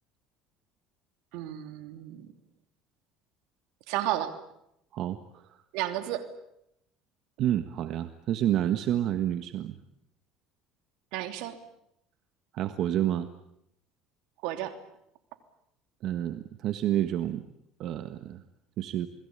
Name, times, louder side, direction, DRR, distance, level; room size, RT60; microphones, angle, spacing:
voice 1, 1.3-2.3 3.9-4.4 5.7-6.3 11.1-11.6 14.4-14.8, right 13 dB, 75° right, 8 dB, 3.2 m, -32 dB
voice 2, 4.9-5.5 7.4-9.8 12.5-13.3 16.0-17.5 17.8-18.4 18.8-19.1, right 12 dB, 55° right, 10 dB, 1.5 m, -29 dB
28.5 x 21.0 x 8.9 m, 0.78 s
supercardioid pair, 115°, 0 cm